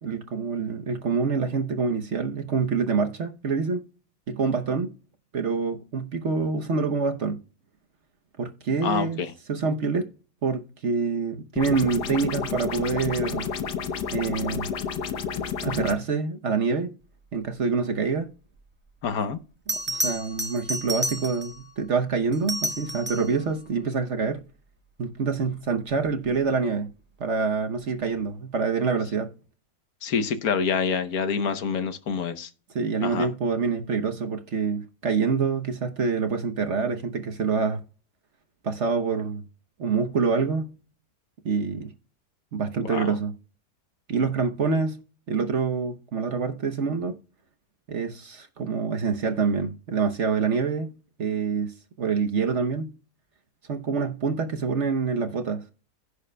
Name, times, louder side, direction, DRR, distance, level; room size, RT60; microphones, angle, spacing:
voice 1, 0.0-3.8 4.3-4.9 5.3-7.4 8.4-9.2 9.5-10.1 10.4-13.5 14.1-14.7 15.6-16.9 17.3-18.3 19.9-24.4 25.0-26.9 27.2-29.3 32.7-37.8 38.6-39.4 39.8-40.7 41.4-41.9 42.5-43.3 44.1-45.0 45.3-47.2 47.9-50.9 51.2-52.9 53.7-55.6, right 5 dB, 50° right, 1.0 m, -26 dB
voice 2, 8.8-9.3 19.0-19.4 30.0-32.5 33.0-33.3 42.8-43.1, left 6 dB, 65° left, 1.3 m, -27 dB
sound 1, 11.6-16.0, left 7 dB, 85° left, 1.5 m, -30 dB
Bell, 19.1-19.2 19.7-21.6 22.3-23.4 26.1-26.3, right 1 dB, 10° right, 0.6 m, -30 dB
16.0 x 6.6 x 2.2 m
omnidirectional pair, 1.7 m